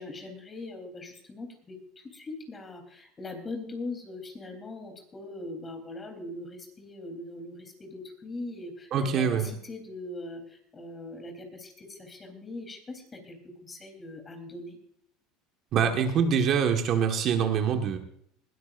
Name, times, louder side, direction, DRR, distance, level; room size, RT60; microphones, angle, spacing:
voice 1, 0.0-14.8, left 2 dB, 20° left, 6 dB, 3.7 m, -41 dB
voice 2, 8.9-9.5 15.7-18.0, right 7 dB, 50° right, 5 dB, 1.6 m, -24 dB
20.5 x 13.0 x 2.6 m, 0.67 s
supercardioid pair, 120°, 0 cm